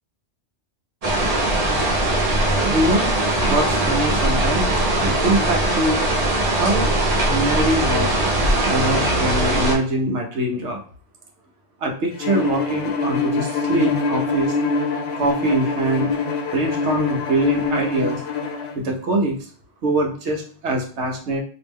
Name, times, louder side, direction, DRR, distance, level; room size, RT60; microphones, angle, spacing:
sound 1, 1.0-9.7, right 1 dB, 40° right, 0.7 m, -20 dB
voice 1, 2.7-3.1 3.5-6.0 6.5-6.9 7.3-8.1 8.6-10.8 11.8-14.6 15.1-16.1 16.5-18.2 18.7-19.4 19.8-21.4, right 1 dB, 75° right, 1 dB, 1.2 m, -23 dB
Bowed string instrument, 12.2-18.8, left 4 dB, 70° left, 0.9 m, -24 dB
3.1 x 2.8 x 3.5 m, 0.43 s
omnidirectional pair, 1.2 m